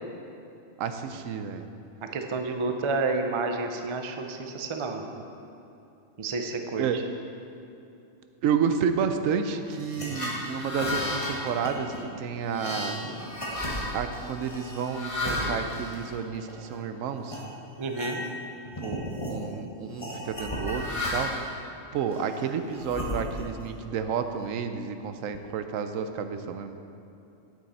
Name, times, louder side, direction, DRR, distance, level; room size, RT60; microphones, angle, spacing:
voice 1, 0.8-1.6 6.8-7.0 8.4-13.1 13.9-17.4 18.8-21.3 21.9-26.8, right 7 dB, 80° right, 8 dB, 1.0 m, -30 dB
voice 2, 2.0-5.2 6.2-7.0 17.8-18.2, right 3 dB, 40° right, 5 dB, 0.4 m, -30 dB
sound 1, 9.7-16.8 17.3-17.4 17.8-18.5 18.7-19.4 20.0-21.5 22.1-23.6, left 1 dB, 25° left, 1.5 m, -33 dB
9.2 x 8.5 x 4.2 m, 2.8 s
omnidirectional pair, 1.4 m